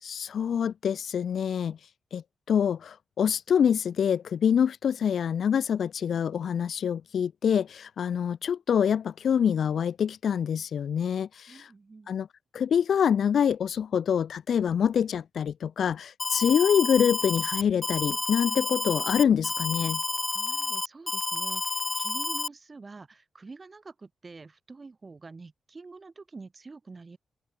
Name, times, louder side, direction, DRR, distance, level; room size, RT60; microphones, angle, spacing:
voice 1, 0.0-1.8 2.1-11.7 12.1-12.3 12.5-20.0, left 8 dB, 60° left, 0.5 m, -26 dB
voice 2, 11.5-12.2 20.3-27.2, right 3 dB, 25° right, 5.4 m, -46 dB
Alarm, 16.2-22.5, left 3 dB, 20° left, 1.6 m, -30 dB
open air
wide cardioid pair, 155°, 0 cm